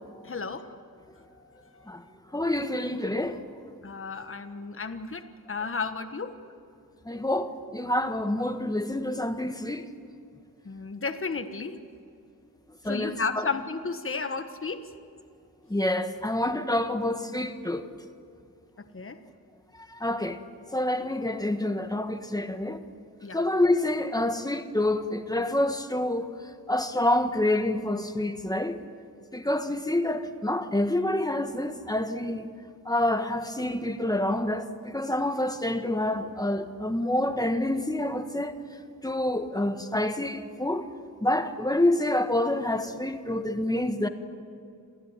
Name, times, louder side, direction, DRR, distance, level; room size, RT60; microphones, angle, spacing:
voice 1, 0.2-0.7 1.7-1.8 3.8-6.3 10.6-11.8 12.8-14.9 18.8-19.2 23.2-23.4, left 4 dB, 40° left, 1.4 m, -33 dB
voice 2, 2.3-3.4 7.0-9.9 12.8-13.5 15.7-17.9 19.8-20.4 20.7-22.8 23.3-26.3 26.7-28.8 29.3-32.5 32.8-38.5 39.0-40.8 41.2-44.1, left 1 dB, 10° left, 1.4 m, -27 dB
27.5 x 16.0 x 9.7 m
wide cardioid pair, 125°, 35 cm